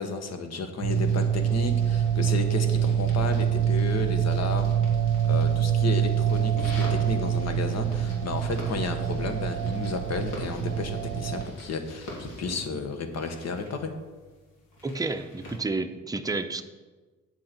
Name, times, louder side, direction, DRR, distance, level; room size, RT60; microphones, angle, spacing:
voice 1, 0.0-4.8 5.2-13.9, left 4 dB, 60° left, 6 dB, 1.3 m, -32 dB
sound 1, 0.8-11.5, right 9 dB, 90° right, 0.6 m, -25 dB
sound 2, 0.9-15.6, left 1 dB, 80° left, 3.0 m, -45 dB
voice 2, 14.8-16.6, right 3 dB, 10° right, 7 dB, 0.6 m, -30 dB
9.3 x 7.5 x 4.5 m, 1.3 s
cardioid pair, 90°, 30 cm